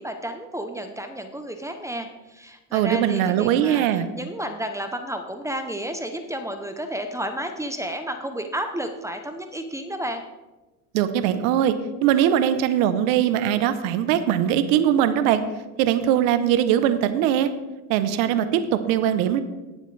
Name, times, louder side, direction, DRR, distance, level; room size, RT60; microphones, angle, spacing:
voice 1, 0.0-3.8 4.1-10.2, right 1 dB, 5° right, 6 dB, 0.8 m, -31 dB
voice 2, 2.7-4.1 10.9-11.8 12.0-15.4 15.8-17.5 17.9-19.4, right 10 dB, 80° right, 11 dB, 1.0 m, -21 dB
18.5 x 7.4 x 3.4 m, 1.1 s
supercardioid pair, 115°, 40 cm